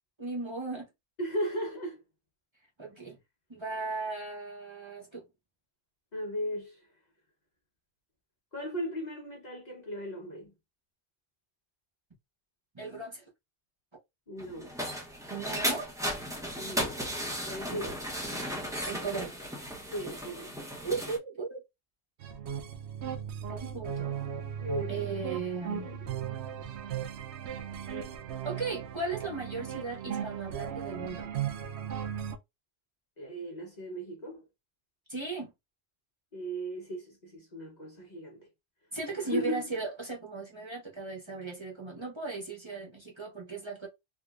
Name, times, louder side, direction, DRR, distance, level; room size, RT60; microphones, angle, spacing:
voice 1, 0.2-0.9 2.8-3.2 3.5-5.2 12.7-13.2 15.3-15.9 17.7-17.8 18.9-19.3 20.8-21.6 23.5-24.2 24.9-25.9 28.4-31.3 35.1-35.5 38.9-43.9, right 4 dB, 25° right, 1.0 m, -36 dB
voice 2, 1.2-2.0 6.1-6.9 8.5-10.5 14.3-14.8 16.6-17.0 17.4-18.0 19.9-20.5 24.6-24.9 25.7-26.1 33.2-34.4 36.3-38.5 39.2-39.7, equal, 45° left, 1.0 m, -37 dB
sound 1, 14.4-21.2, equal, 5° right, 0.7 m, -35 dB
sound 2, 22.2-32.4, right 9 dB, 80° right, 0.9 m, -37 dB
3.7 x 2.8 x 2.4 m
omnidirectional pair, 1.1 m